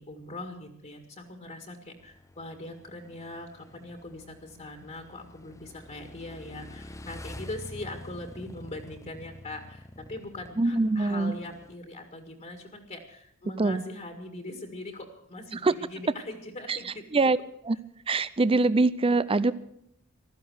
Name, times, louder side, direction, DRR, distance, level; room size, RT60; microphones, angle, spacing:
voice 1, 0.0-17.0, left 2 dB, 35° left, 4 dB, 2.0 m, -41 dB
Motorcycle / Engine, 2.0-11.8, left 1 dB, 15° left, 0.7 m, -47 dB
voice 2, 10.6-11.3 13.6-13.8 15.5-15.7 16.7-16.8 17.1-17.4 17.6-17.8 18.1-19.5, right 3 dB, 25° right, 16 dB, 0.5 m, -23 dB
15.0 x 13.5 x 6.3 m, 0.71 s
head